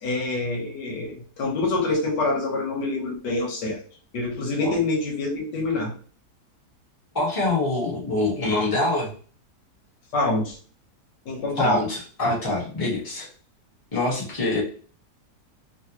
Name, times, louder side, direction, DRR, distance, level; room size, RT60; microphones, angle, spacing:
voice 1, 0.0-3.8 4.1-5.9 10.1-10.6 11.2-11.9, left 2 dB, 85° left, 0 dB, 1.7 m, -26 dB
voice 2, 7.1-9.1 11.6-13.3 13.9-14.6, left 2 dB, 15° left, -5 dB, 1.2 m, -25 dB
3.8 x 2.4 x 2.9 m, 0.41 s
omnidirectional pair, 1.8 m